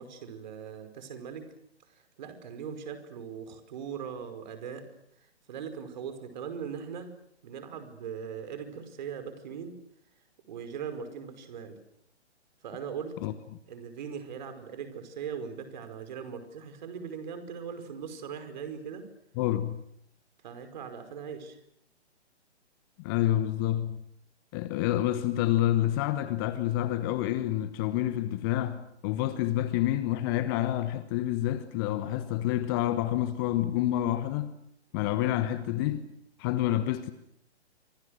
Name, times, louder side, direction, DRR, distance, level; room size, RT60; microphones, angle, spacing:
voice 1, 0.0-1.5 1.9-4.8 5.5-7.1 7.4-9.7 10.5-11.8 12.6-13.1 13.7-19.1 20.4-21.6, right 7 dB, 40° right, 5.1 m, -40 dB
voice 2, 19.4-19.8 23.0-24.0 24.5-34.5 34.9-36.1 36.4-37.1, left 13 dB, 20° left, 1.1 m, -28 dB
29.5 x 26.0 x 6.6 m
figure-of-eight pair, 130°, 34 cm